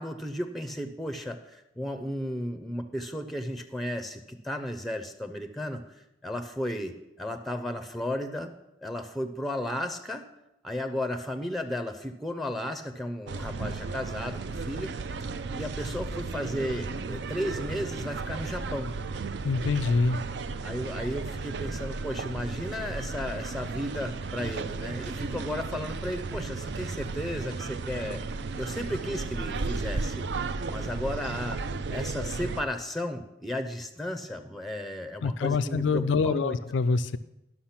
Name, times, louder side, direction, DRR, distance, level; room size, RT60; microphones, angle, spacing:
voice 1, 0.0-8.5 8.8-10.3 10.6-14.9 15.5-18.9 20.6-28.2 28.6-30.2 30.7-31.6 31.9-36.6, left 1 dB, ahead, 9 dB, 0.5 m, -34 dB
sound 1, 13.3-32.6, right 3 dB, 70° right, 0.5 m, -34 dB
voice 2, 19.4-20.2 35.2-37.2, left 4 dB, 90° left, 13 dB, 0.4 m, -25 dB
11.5 x 6.2 x 5.8 m, 0.90 s
head